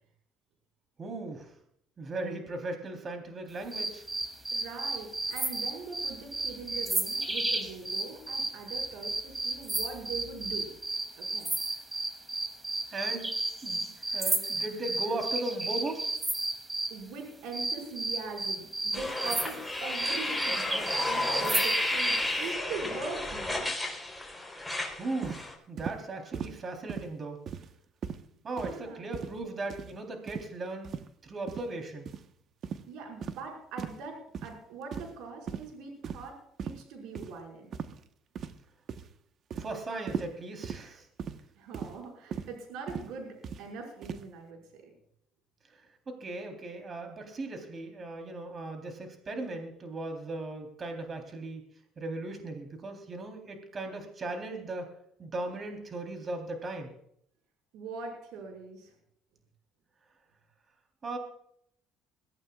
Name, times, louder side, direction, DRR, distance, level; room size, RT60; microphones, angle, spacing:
voice 1, 1.0-1.5 2.0-4.0 12.9-13.3 13.6-13.9 14.1-16.0 25.0-27.4 28.4-30.9 31.2-32.1 39.6-41.1 46.1-51.6 52.0-54.9 55.2-56.9 61.0-61.2, right 2 dB, 35° right, 4 dB, 3.7 m, -37 dB
sound 1, 3.7-17.0 17.5-22.3, right 2 dB, 15° right, 2.8 m, -33 dB
voice 2, 4.5-10.7 11.2-11.5 16.9-23.7 28.6-29.0 32.9-37.7 41.6-44.9 57.7-58.9, right 4 dB, 80° right, 1 dB, 5.5 m, -42 dB
sound 2, 18.9-25.5, left 1 dB, 5° left, 3.9 m, -32 dB
sound 3, 25.2-25.4 25.8-26.0 26.3-26.6 26.9-27.1 27.5-27.7 28.0-28.2 28.6-28.8 29.1-29.4 29.7-29.9 30.3-30.5 30.8-31.1 31.5-31.7 32.1-32.2 32.6-32.8 33.2-33.4 33.8-34.0 34.3-34.5 34.9-35.2 35.5-35.7 36.0-36.3 36.6-36.8 37.2-37.3 37.7-38.0 38.4-38.6 38.9-39.1 39.5-39.7 40.1-40.3 40.6-40.8 41.2-41.4 41.7-42.0 42.3-42.5 42.9-43.1 43.4-43.6 44.0-44.2, right 7 dB, 50° right, 1.2 m, -38 dB
23.0 x 15.0 x 2.4 m, 0.71 s
cardioid pair, 100°, 0 cm